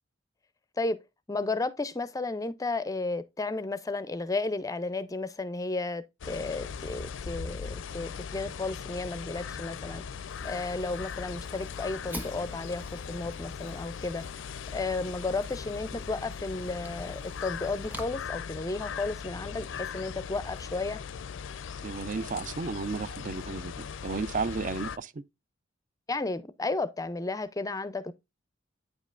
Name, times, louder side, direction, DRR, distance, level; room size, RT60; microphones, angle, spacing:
voice 1, 1.3-10.0 10.4-14.3 14.7-21.0 26.1-28.1, left 3 dB, 20° left, 0.4 m, -33 dB
sound 1, 6.2-25.0, left 6 dB, 75° left, 0.4 m, -39 dB
Fire, 10.3-18.0, equal, 10° right, 1.2 m, -47 dB
voice 2, 21.8-25.1, right 4 dB, 40° right, 0.4 m, -33 dB
9.3 x 5.3 x 2.4 m
head